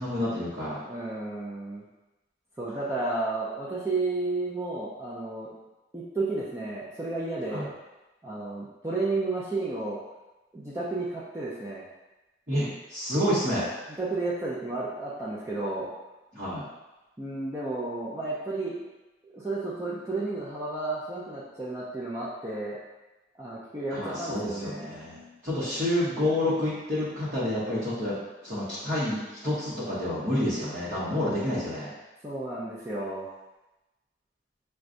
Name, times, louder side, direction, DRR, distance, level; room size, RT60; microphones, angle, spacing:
voice 1, 0.0-0.8 7.5-7.6 12.5-13.7 16.3-16.6 23.9-28.2 28.4-31.9, left 1 dB, 45° right, -12 dB, 1.0 m, -29 dB
voice 2, 0.9-1.8 2.6-5.5 5.9-7.7 8.2-10.0 10.5-11.8 14.0-15.9 17.2-18.8 19.2-22.8 23.4-25.0 32.2-33.3, right 2 dB, 15° right, -8 dB, 0.5 m, -32 dB
6.1 x 2.2 x 2.6 m, 1.1 s
head